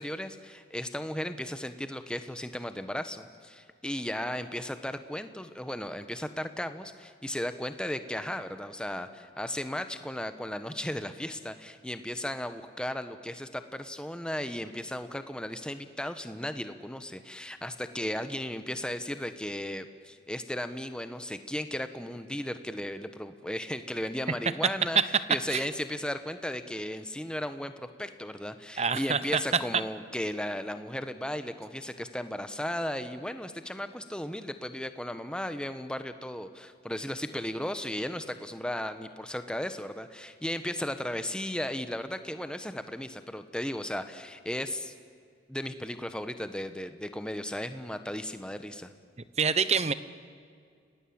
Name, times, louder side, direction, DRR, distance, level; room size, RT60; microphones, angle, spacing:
voice 1, 0.0-25.0 25.3-44.9 45.5-48.9, left 1 dB, 5° left, 9 dB, 1.1 m, -35 dB
voice 2, 28.8-29.4 49.4-49.9, right 6 dB, 35° right, 14 dB, 0.9 m, -25 dB
29.5 x 19.0 x 8.8 m, 2.2 s
head